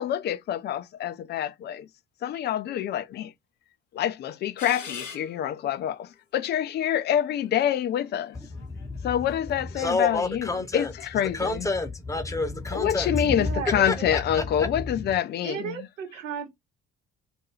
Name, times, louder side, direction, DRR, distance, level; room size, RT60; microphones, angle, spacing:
voice 1, 0.0-1.9 2.2-3.3 3.9-8.4 9.0-11.7 12.7-15.8, left 10 dB, 30° left, 0.3 m, -27 dB
sound 1, 4.6-5.7 6.4-6.5 7.3-9.7, left 5 dB, 85° left, 0.6 m, -44 dB
voice 2, 8.5-9.2 9.7-10.9 11.3-15.1, left 3 dB, 10° left, 0.7 m, -29 dB
voice 3, 13.2-14.5 15.4-16.5, right 7 dB, 80° right, 0.9 m, -36 dB
2.3 x 2.2 x 3.2 m
figure-of-eight pair, 50°, 37 cm